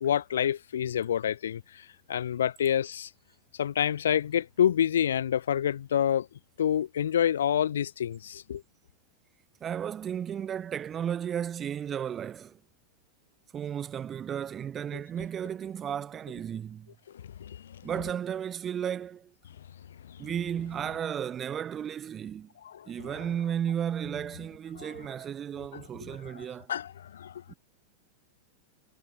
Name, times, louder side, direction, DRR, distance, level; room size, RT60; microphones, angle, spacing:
voice 1, 0.0-3.1 3.5-6.3 6.6-8.6 17.1-17.8 20.0-20.3 22.6-23.2 24.8-24.9 25.7-25.8 26.2-27.4, left 9 dB, 65° left, 1.7 m, -28 dB
voice 2, 9.6-12.6 13.5-16.9 17.8-19.3 20.2-22.5 22.9-26.7 27.5-27.6, right 9 dB, 25° right, 1.5 m, -34 dB
figure-of-eight pair, 90°, 0 cm